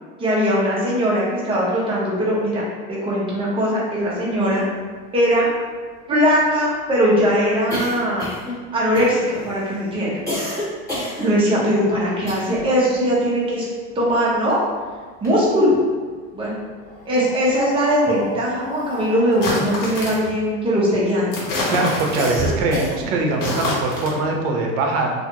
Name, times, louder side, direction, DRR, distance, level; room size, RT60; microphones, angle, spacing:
voice 1, 0.2-2.6 2.9-4.6 5.1-5.5 6.1-8.3 8.7-10.2 11.2-13.6 13.9-14.6 15.2-15.8 16.3-16.6 17.1-21.3, equal, 15° right, -6 dB, 0.7 m, -20 dB
sound 1, 4.6-4.7 4.9-5.0 5.3-12.8 13.1-14.6 15.0-15.9 16.7-21.2 21.6-23.3, equal, 10° left, 1.2 m, -31 dB
sound 2, 19.3-20.3 21.3-22.6 23.3-24.2, left 2 dB, 70° left, 1.1 m, -26 dB
voice 2, 21.7-25.1, right 3 dB, 65° right, 2 dB, 0.7 m, -22 dB
2.5 x 2.4 x 2.8 m, 1.5 s
supercardioid pair, 120°, 40 cm